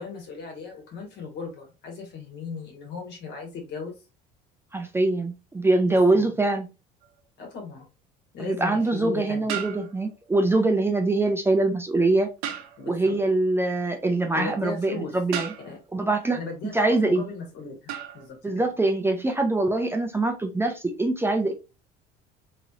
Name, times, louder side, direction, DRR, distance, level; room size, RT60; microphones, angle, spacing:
voice 1, 0.0-4.0 5.9-6.4 7.4-7.9 8.3-9.6 10.5-10.7 12.8-13.1 14.3-15.2 15.6-15.8 16.3-18.5, left 4 dB, 60° left, 2 dB, 1.5 m, -37 dB
voice 2, 4.7-6.7 8.4-12.3 12.9-15.5 15.9-16.4 16.7-17.2 18.4-21.5, right 2 dB, 10° right, 4 dB, 0.5 m, -23 dB
sound 1, 7.0-7.2 9.5-10.3 12.4-13.0 15.3-16.0 17.9-18.3, right 9 dB, 85° right, 0.7 m, -35 dB
3.0 x 2.9 x 2.4 m, 0.29 s
supercardioid pair, 90°, 20 cm